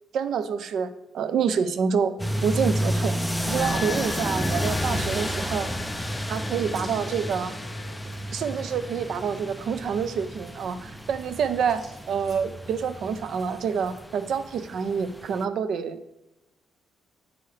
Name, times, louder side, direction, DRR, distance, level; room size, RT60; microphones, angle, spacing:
voice 1, 0.1-3.2 3.4-5.7 6.3-7.5 8.3-16.1, right 6 dB, 55° right, 12 dB, 0.7 m, -27 dB
sound 1, 1.2-9.6, left 9 dB, 75° left, 0.7 m, -43 dB
sound 2, 2.2-15.4, equal, ahead, 0.4 m, -31 dB
sound 3, 4.5-7.8 8.0-8.2 8.5-8.6 8.9-12.4, right 2 dB, 35° right, 3.1 m, -52 dB
9.6 x 9.2 x 3.4 m, 0.96 s
cardioid pair, 160°, 0 cm